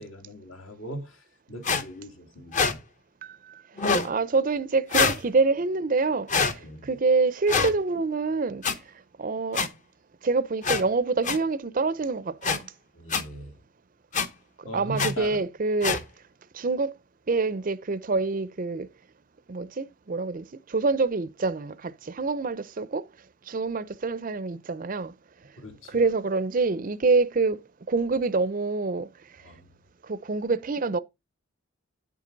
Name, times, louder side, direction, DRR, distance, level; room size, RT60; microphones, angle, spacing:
voice 1, 0.0-2.8 6.6-6.9 12.9-13.6 14.6-15.4 25.6-26.1 29.4-29.7, equal, 70° left, 2.5 m, -39 dB
sound 1, 1.6-1.8 2.5-2.7 3.8-4.1 4.9-5.2 6.3-6.5 7.5-7.7 8.6-8.7 9.5-9.7 10.6-10.8 11.2-11.4 12.4-12.6 13.1-13.2 14.1-14.3 15.0-15.1 15.8-16.0, left 5 dB, 35° left, 0.9 m, -24 dB
voice 2, 3.2-8.9 9.2-9.7 10.2-12.7 14.6-16.0 16.5-17.0 17.3-18.9 19.5-23.1 23.5-25.1 25.9-29.4 30.0-31.0, right 3 dB, 40° right, 0.5 m, -26 dB
9.3 x 7.5 x 3.9 m
head